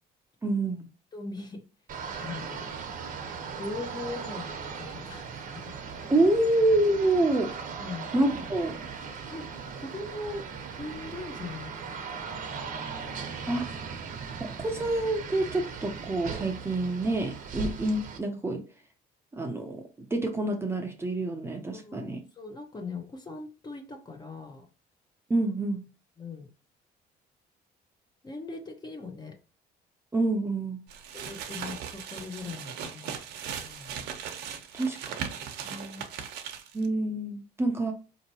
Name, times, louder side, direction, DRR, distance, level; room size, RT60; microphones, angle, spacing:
voice 1, 0.4-0.9 6.1-7.5 8.1-8.8 13.5-13.7 14.4-18.6 19.3-22.2 25.3-25.8 30.1-30.8 34.7-35.2 36.7-37.9, right 2 dB, 15° right, 0.7 m, -27 dB
voice 2, 1.1-1.6 2.1-2.6 3.6-5.5 7.8-8.1 9.2-9.5 9.8-10.5 10.8-12.0 12.3-13.3 21.7-24.7 26.2-26.5 28.2-29.4 31.1-33.1 33.5-34.1 35.6-36.1, left 3 dB, 25° left, 0.9 m, -40 dB
sound 1, 1.9-18.2, right 6 dB, 50° right, 0.9 m, -38 dB
sound 2, 30.9-36.9, right 8 dB, 80° right, 0.8 m, -38 dB
4.4 x 2.9 x 2.8 m
cardioid pair, 110°, 17 cm